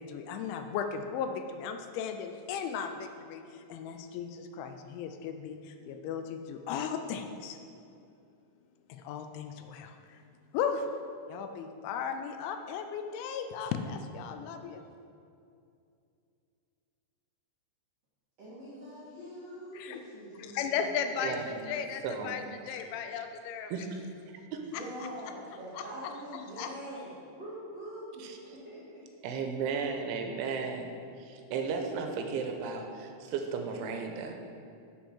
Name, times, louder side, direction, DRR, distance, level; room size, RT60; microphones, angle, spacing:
voice 1, 0.0-7.6 8.9-10.2 10.5-10.9 11.3-14.8 19.7-20.0 20.4-23.7 24.7-24.8 25.7-26.7, left 7 dB, 85° left, 7 dB, 2.8 m, -36 dB
voice 2, 18.4-21.3 24.6-29.0, equal, 65° right, -9 dB, 1.6 m, -44 dB
voice 3, 21.2-21.7 22.0-22.3 23.7-24.0 24.5-24.6 28.2-28.4 29.2-30.9 31.2-34.3, right 5 dB, 80° right, 4 dB, 3.1 m, -34 dB
7.7 x 7.1 x 6.2 m, 2.5 s
omnidirectional pair, 5.5 m